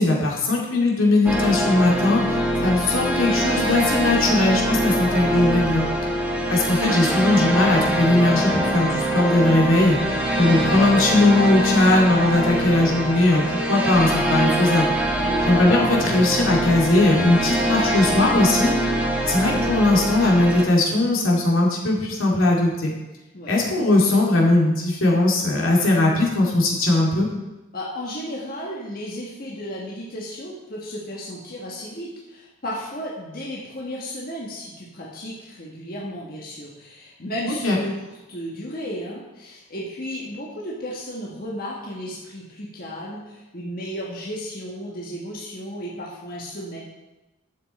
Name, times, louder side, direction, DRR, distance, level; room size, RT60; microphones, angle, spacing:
voice 1, 0.0-5.9 6.5-10.0 10.4-14.9 15.5-18.7 19.2-22.9 23.5-27.3 37.6-37.8, left 2 dB, 75° left, -2 dB, 2.4 m, -19 dB
sound 1, 1.3-20.7, right 1 dB, 5° right, 1.1 m, -23 dB
voice 2, 27.7-46.8, equal, 45° left, -4 dB, 1.5 m, -34 dB
11.0 x 7.3 x 4.2 m, 1.1 s
head